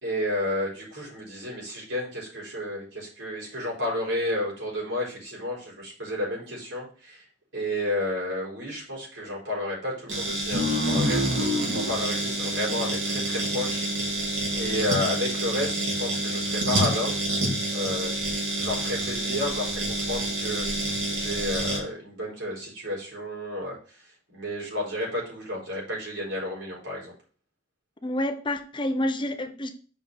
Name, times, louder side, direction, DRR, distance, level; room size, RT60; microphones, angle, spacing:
voice 1, 0.0-7.2 7.5-14.3 14.5-17.1 17.7-27.1, left 1 dB, 85° right, 4.5 m, -32 dB
sound 1, 10.1-21.8, right 1 dB, 65° right, 2.7 m, -28 dB
sound 2, 10.5-13.7, left 1 dB, 50° right, 1.9 m, -28 dB
voice 2, 28.0-29.7, left 1 dB, 25° left, 0.8 m, -28 dB
6.1 x 5.1 x 5.5 m
head